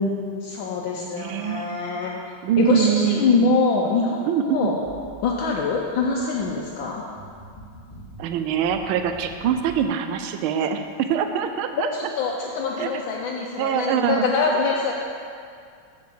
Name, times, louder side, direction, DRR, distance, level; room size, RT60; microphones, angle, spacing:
voice 1, 0.0-2.2 2.6-4.8 5.2-7.0 11.8-14.9, left 4 dB, 75° left, -1 dB, 1.3 m, -24 dB
voice 2, 0.9-1.7 2.4-3.5 4.3-4.7 8.2-11.9 12.8-13.0 13.6-14.3, right 8 dB, 80° right, 7 dB, 1.4 m, -24 dB
sound 1, 4.8-9.8, right 1 dB, 15° left, 0.9 m, -45 dB
6.7 x 4.7 x 6.9 m, 2.3 s
omnidirectional pair, 2.3 m